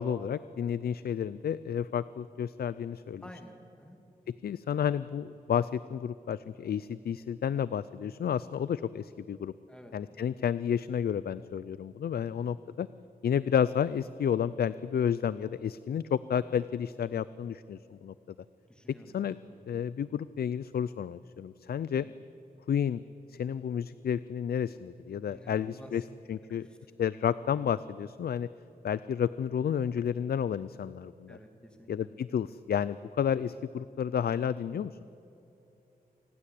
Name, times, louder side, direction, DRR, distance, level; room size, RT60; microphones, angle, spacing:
voice 1, 0.0-3.2 4.3-9.5 9.9-12.9 13.2-18.1 19.1-19.4 19.7-22.1 22.7-23.0 23.3-26.0 26.3-26.7 27.0-28.5 28.8-31.4 31.9-34.9, left 8 dB, 80° left, 16 dB, 0.5 m, -31 dB
voice 2, 3.2-4.0 9.7-10.3 18.7-19.1 19.4-19.6 21.9-22.1 25.3-26.0 26.5-26.8 27.4-27.5 31.3-31.9, equal, 5° left, 4 dB, 2.6 m, -52 dB
28.0 x 19.5 x 8.6 m, 3.0 s
wide cardioid pair, 130°, 16 cm